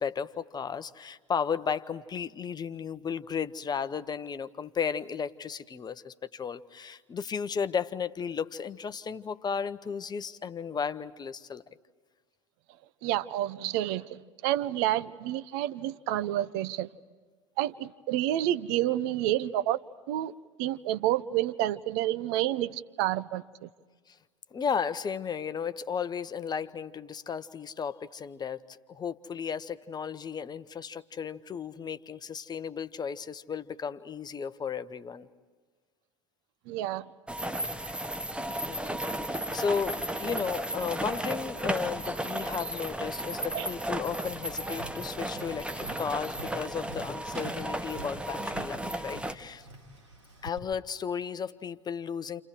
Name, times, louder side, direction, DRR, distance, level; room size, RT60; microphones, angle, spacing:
voice 1, 0.0-11.6 24.1-24.2 24.5-35.3 38.6-38.8 39.2-49.7 50.4-52.4, left 6 dB, 25° left, 12 dB, 1.0 m, -34 dB
voice 2, 13.0-16.9 17.6-19.8 20.1-20.3 20.6-23.7 36.7-37.1 43.5-43.7, right 13 dB, 60° right, 15 dB, 0.8 m, -29 dB
sound 1, 37.3-49.4, right 1 dB, 5° right, 1.3 m, -34 dB
Tap, 44.2-50.6, right 1 dB, 90° right, 3.1 m, -48 dB
29.0 x 29.0 x 4.7 m, 1.5 s
figure-of-eight pair, 70°, 15 cm